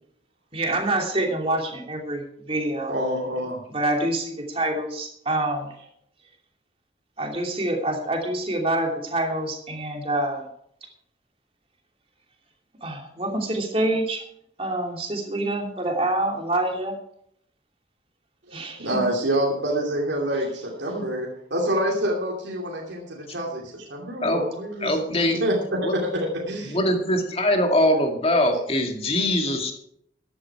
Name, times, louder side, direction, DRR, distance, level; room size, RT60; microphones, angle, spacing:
voice 1, 0.5-2.2 2.5-2.9 3.7-5.7 7.2-10.4 12.8-14.2 14.6-16.9 18.5-19.1, right 1 dB, 30° right, 2 dB, 2.8 m, -26 dB
voice 2, 2.9-3.6 18.5-25.0 25.3-26.8, right 1 dB, 75° right, -2 dB, 2.7 m, -27 dB
voice 3, 24.8-25.4 25.8-25.9 26.7-29.7, left 1 dB, 30° left, 3 dB, 2.3 m, -22 dB
13.5 x 11.0 x 4.8 m, 0.70 s
head